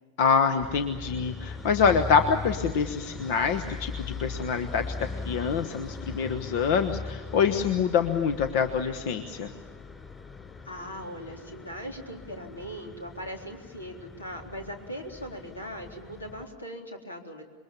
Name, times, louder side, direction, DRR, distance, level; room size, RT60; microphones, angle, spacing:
voice 1, 0.2-9.5, left 6 dB, 50° left, 10 dB, 1.2 m, -25 dB
sound 1, 0.6-16.5, left 3 dB, 15° left, 5.2 m, -40 dB
voice 2, 10.6-17.4, equal, 75° left, 2 dB, 3.8 m, -39 dB
27.5 x 22.5 x 7.3 m, 1.4 s
figure-of-eight pair, 90°, 0 cm